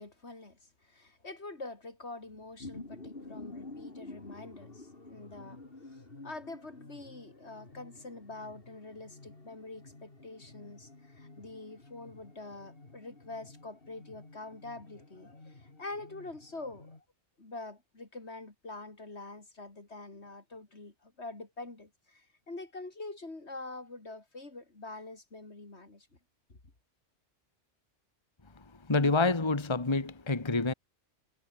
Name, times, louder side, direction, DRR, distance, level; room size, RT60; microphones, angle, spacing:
voice 1, 0.0-5.6 5.9-17.0 17.4-26.1 26.5-26.6, left 2 dB, 70° left, 3.9 m, -45 dB
sound 1, 2.2-17.0, left 2 dB, 55° left, 3.5 m, -50 dB
voice 2, 28.9-30.7, left 3 dB, 25° left, 1.5 m, -27 dB
omnidirectional pair, 1.2 m